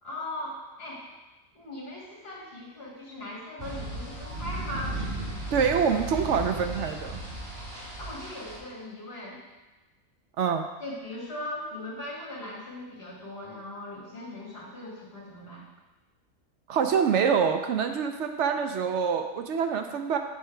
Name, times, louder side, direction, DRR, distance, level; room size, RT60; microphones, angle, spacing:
voice 1, 0.0-1.0 1.5-5.0 8.0-9.4 10.8-15.6, left 1 dB, 50° left, -6 dB, 2.2 m, -39 dB
sound 1, 3.6-8.6, right 1 dB, 30° right, 2.6 m, -36 dB
voice 2, 5.5-7.2 10.4-10.6 16.7-20.2, right 6 dB, 70° right, 6 dB, 0.8 m, -25 dB
7.4 x 4.7 x 4.4 m, 1.1 s
omnidirectional pair, 1.4 m